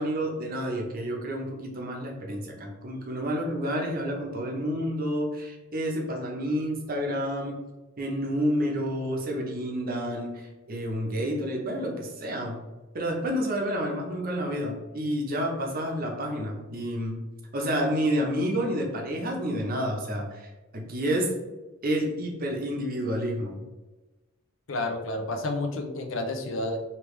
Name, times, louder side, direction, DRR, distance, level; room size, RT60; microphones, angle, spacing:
voice 1, 0.0-7.6 8.0-12.6 12.9-17.2 17.5-21.3 21.8-23.6, equal, 45° right, 0 dB, 0.8 m, -29 dB
voice 2, 24.7-26.8, left 2 dB, 70° left, 5 dB, 0.6 m, -30 dB
3.3 x 2.9 x 3.2 m, 1.1 s
head